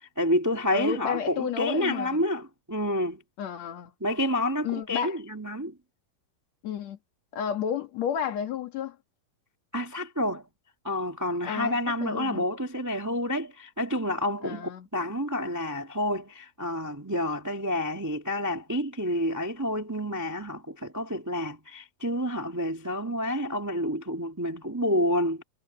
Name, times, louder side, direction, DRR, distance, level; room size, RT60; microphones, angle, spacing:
voice 1, 0.2-3.2 4.0-5.7 9.7-10.4 10.8-25.4, left 1 dB, 10° right, 0.9 m, -29 dB
voice 2, 0.7-2.2 3.4-3.9 4.6-5.2 6.6-7.0 7.3-9.0 11.4-12.4 14.4-14.9, left 8 dB, 55° left, 3.0 m, -32 dB
omnidirectional pair, 4.0 m